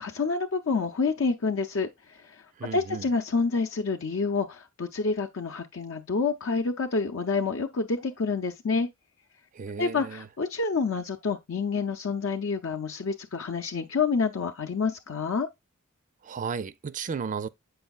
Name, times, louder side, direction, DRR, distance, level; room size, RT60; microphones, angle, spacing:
voice 1, 0.0-8.9 9.8-15.5, left 4 dB, 70° left, 0.6 m, -28 dB
voice 2, 2.6-3.1 9.5-10.3 16.2-17.5, right 6 dB, 40° right, 0.4 m, -34 dB
7.9 x 5.5 x 2.3 m
head